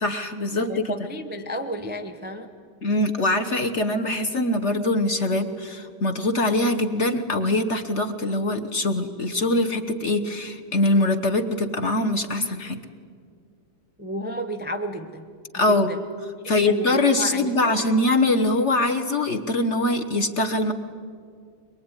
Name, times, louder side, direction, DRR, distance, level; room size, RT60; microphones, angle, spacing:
voice 1, 0.0-0.9 2.8-12.8 15.5-15.9 16.5-20.7, left 2 dB, 40° left, 5 dB, 1.2 m, -23 dB
voice 2, 0.7-2.5 14.0-15.3 15.7-16.0 16.4-17.7, equal, 10° right, 5 dB, 0.5 m, -32 dB
23.5 x 22.5 x 9.8 m, 2.2 s
omnidirectional pair, 2.4 m